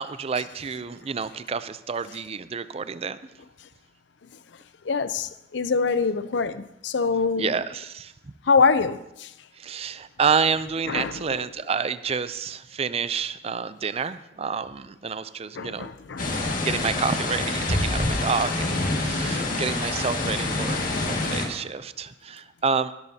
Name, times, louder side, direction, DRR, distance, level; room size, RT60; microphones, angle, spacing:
voice 1, 0.0-3.2 7.4-8.1 9.6-15.9 16.6-22.9, right 5 dB, 30° right, 0.4 m, -29 dB
voice 2, 4.9-7.5 8.5-9.3 10.9-11.2 15.6-16.4, left 4 dB, 65° left, 0.5 m, -24 dB
sound 1, 16.2-21.5, left 2 dB, 45° left, 1.9 m, -26 dB
18.5 x 12.0 x 2.8 m
head